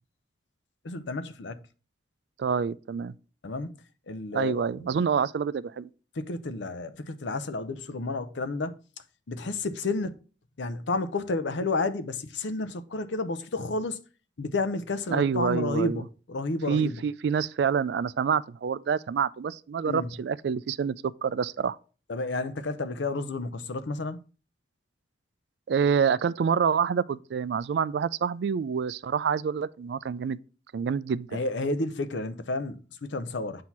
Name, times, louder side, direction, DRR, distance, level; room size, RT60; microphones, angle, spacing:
voice 1, 0.8-1.6 3.4-3.7 4.1-5.0 6.1-8.8 9.3-10.1 10.6-14.0 14.4-17.0 19.9-20.1 22.1-24.2 31.3-33.6, left 2 dB, 80° left, 0.6 m, -31 dB
voice 2, 2.4-3.1 4.3-5.9 15.1-16.0 16.7-20.9 21.2-21.8 25.7-30.4 30.7-31.4, right 6 dB, 65° right, 0.3 m, -27 dB
7.7 x 2.8 x 5.8 m
head